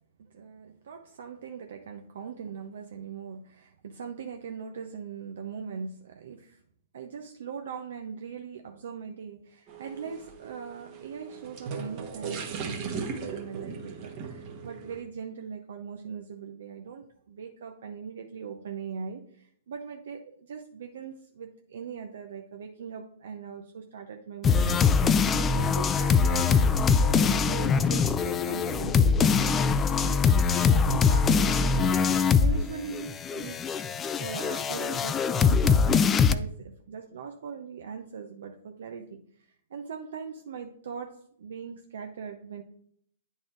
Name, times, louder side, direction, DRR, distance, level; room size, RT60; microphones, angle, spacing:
voice 1, 0.2-6.6 6.9-33.8 34.2-39.2 39.5-41.1 41.4-42.6, right 6 dB, 70° right, 4 dB, 0.7 m, -40 dB
sound 1, 9.7-15.0, right 5 dB, 40° right, 1.2 m, -38 dB
sound 2, 24.4-32.6 32.9-36.4, left 5 dB, 20° left, 0.4 m, -23 dB
9.0 x 4.1 x 3.8 m, 0.64 s
hypercardioid pair, 125°, 0 cm